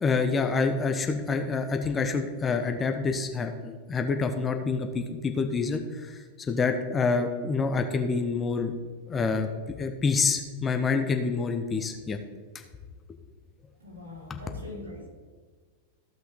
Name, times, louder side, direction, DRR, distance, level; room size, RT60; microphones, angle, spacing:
voice 1, 0.0-9.5 9.8-12.2 14.3-14.4, left 4 dB, 20° left, 5 dB, 0.9 m, -27 dB
voice 2, 13.8-15.1, left 2 dB, 70° right, -4 dB, 3.3 m, -42 dB
15.5 x 5.8 x 3.8 m, 1.5 s
figure-of-eight pair, 90°, 0 cm